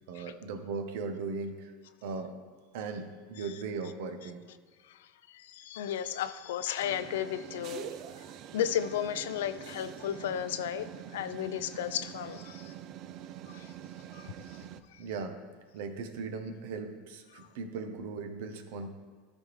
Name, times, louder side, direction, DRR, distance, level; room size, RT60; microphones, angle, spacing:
voice 1, 0.1-1.7 2.0-2.3 2.7-4.4 15.0-15.4 15.7-18.9, right 4 dB, 70° right, 7 dB, 0.8 m, -38 dB
voice 2, 4.8-8.2 8.5-10.9 11.1-12.7 13.5-13.7 14.1-14.3 14.9-15.0 17.3-17.5, left 10 dB, 80° left, 13 dB, 0.4 m, -34 dB
sound 1, 6.8-14.8, right 10 dB, 50° right, 0.4 m, -45 dB
12.5 x 4.3 x 3.2 m, 1.5 s
hypercardioid pair, 100°, 0 cm